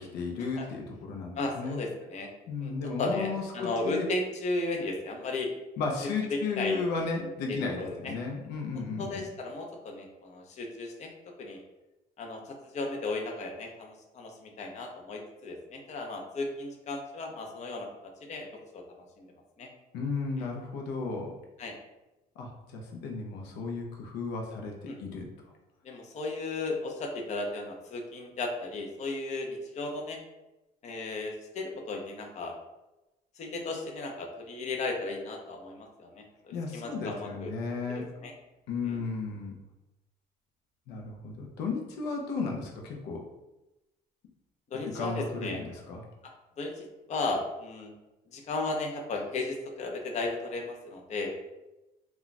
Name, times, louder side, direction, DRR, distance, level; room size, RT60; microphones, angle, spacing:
voice 1, 0.0-1.8 2.5-4.1 5.8-9.3 19.9-21.3 22.4-25.3 36.5-38.1 38.7-39.5 40.9-43.2 44.9-46.0, left 4 dB, 85° left, 1 dB, 0.6 m, -34 dB
voice 2, 1.3-2.3 2.6-2.7 3.0-5.5 6.3-6.8 7.2-8.1 8.7-11.1 11.4-11.6 12.2-17.9 18.3-18.5 18.7-18.8 19.2-19.3 19.6-19.7 21.6-21.7 24.9-25.0 25.8-30.2 30.8-32.5 33.4-37.5 37.9-38.3 38.8-39.0 44.7-45.6 46.6-47.9 48.3-51.3, left 2 dB, 45° left, 1 dB, 0.6 m, -35 dB
2.3 x 2.2 x 3.9 m, 0.99 s
cardioid pair, 110°, 17 cm